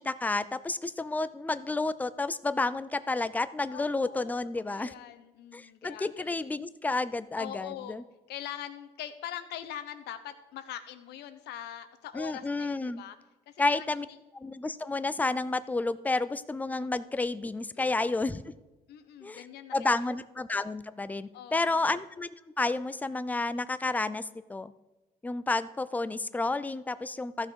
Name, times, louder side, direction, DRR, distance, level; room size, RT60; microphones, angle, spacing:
voice 1, 0.0-4.9 5.5-8.0 12.1-13.0 13.6-14.1 14.3-18.4 19.2-19.4 19.7-24.2 24.5-24.7 25.2-27.5, left 3 dB, 10° left, 14 dB, 0.4 m, -31 dB
voice 2, 3.7-4.3 4.7-6.5 7.3-8.0 8.3-13.2 13.5-14.0 17.8-18.4 18.9-19.9 21.3-21.8, left 11 dB, 80° left, 10 dB, 1.0 m, -43 dB
14.5 x 6.2 x 4.6 m, 1.1 s
cardioid pair, 110°, 17 cm